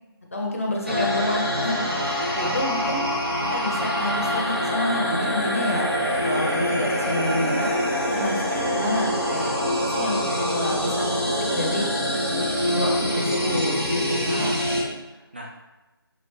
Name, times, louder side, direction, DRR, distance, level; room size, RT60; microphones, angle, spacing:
voice 1, 0.3-3.0 3.5-5.9 6.2-7.7 8.1-9.5 9.8-10.2 10.5-11.0 11.5-11.8 12.6-14.6, left 1 dB, 35° left, -1 dB, 0.6 m, -28 dB
voice 2, 0.9-1.4 2.2-2.6 8.5-8.8 9.9-10.6 14.3-15.5, right 1 dB, 25° right, -2 dB, 0.4 m, -38 dB
sound 1, 0.9-14.8, equal, 80° right, 1.3 m, -25 dB
5.5 x 2.4 x 3.1 m, 1.1 s
figure-of-eight pair, 160°, 13 cm